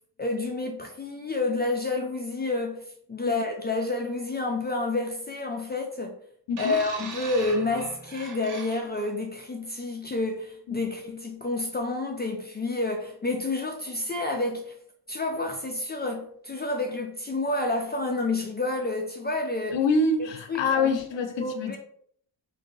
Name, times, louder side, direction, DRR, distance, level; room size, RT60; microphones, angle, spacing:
voice 1, 0.2-2.8 3.1-6.2 6.6-14.7 15.1-19.8 20.5-21.0 21.4-21.8, left 2 dB, 25° left, 0.3 m, -29 dB
sound 1, 6.6-9.1 10.0-10.2, right 5 dB, 45° right, 0.7 m, -40 dB
voice 2, 19.7-21.8, left 3 dB, 75° left, 0.6 m, -25 dB
3.2 x 2.7 x 3.9 m
wide cardioid pair, 170°, 44 cm